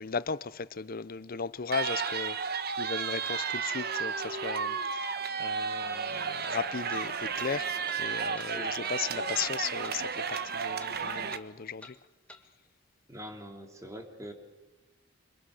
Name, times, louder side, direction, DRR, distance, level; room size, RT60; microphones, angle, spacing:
voice 1, 0.0-5.1 5.4-7.7 8.0-12.0, left 5 dB, 50° left, 0.7 m, -36 dB
sound 1, 1.7-11.4, right 6 dB, 55° right, 1.2 m, -33 dB
sound 2, 4.8-4.9 6.4-6.6 6.9-7.1 7.4-7.5 7.9-8.0 8.4-8.5 8.8-9.0 9.3-9.5 9.8-10.0 10.3-10.5 10.8-11.0 11.3-11.5 11.8-12.0 12.3-12.4, left 2 dB, 5° left, 1.7 m, -49 dB
voice 2, 13.1-14.3, equal, 15° right, 2.9 m, -43 dB
27.0 x 25.5 x 6.5 m
head